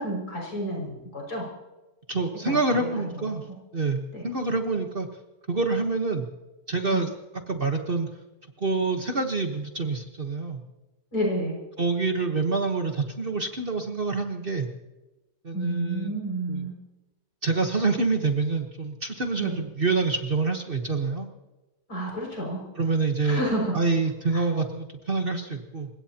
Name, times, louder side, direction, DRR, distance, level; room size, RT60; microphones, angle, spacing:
voice 1, 0.0-1.5 2.5-3.3 4.1-4.2 6.9-7.0 11.1-11.6 15.5-16.7 19.4-19.6 21.9-22.6 23.2-23.7 24.3-24.4, right 1 dB, 65° left, -2 dB, 6.7 m, -30 dB
voice 2, 2.1-3.4 3.7-5.1 5.5-6.3 6.7-7.1 7.5-8.1 8.6-10.6 11.8-14.7 15.4-16.1 16.5-16.7 17.4-21.3 22.8-23.4 23.7-25.9, right 3 dB, 35° right, 4 dB, 1.3 m, -26 dB
29.0 x 17.0 x 2.9 m, 1.1 s
omnidirectional pair, 1.8 m